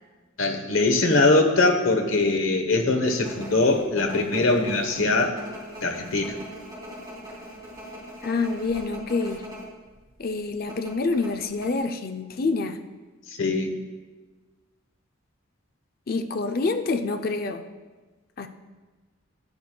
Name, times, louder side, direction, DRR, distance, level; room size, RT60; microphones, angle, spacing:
voice 1, 0.4-5.4 5.8-6.3 13.4-13.7, left 2 dB, 80° left, 4 dB, 1.0 m, -22 dB
sound 1, 3.0-9.7 9.9-10.1 10.7-11.7, equal, 20° right, 2.8 m, -41 dB
voice 2, 8.2-9.4 10.2-12.8 16.1-17.7 18.4-18.5, left 3 dB, 45° left, 6 dB, 0.5 m, -27 dB
11.0 x 10.5 x 2.3 m, 1.3 s
head